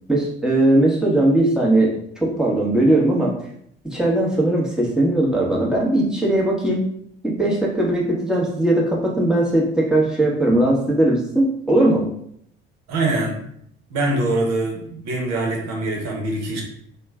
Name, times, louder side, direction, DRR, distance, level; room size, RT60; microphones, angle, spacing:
voice 1, 0.1-1.9 2.2-3.3 3.8-6.8 7.4-12.0, right 1 dB, ahead, -3 dB, 1.1 m, -19 dB
voice 2, 12.9-13.4 13.9-16.6, right 2 dB, 55° right, 0 dB, 1.0 m, -23 dB
3.1 x 2.3 x 3.4 m, 0.70 s
figure-of-eight pair, 50°, 31 cm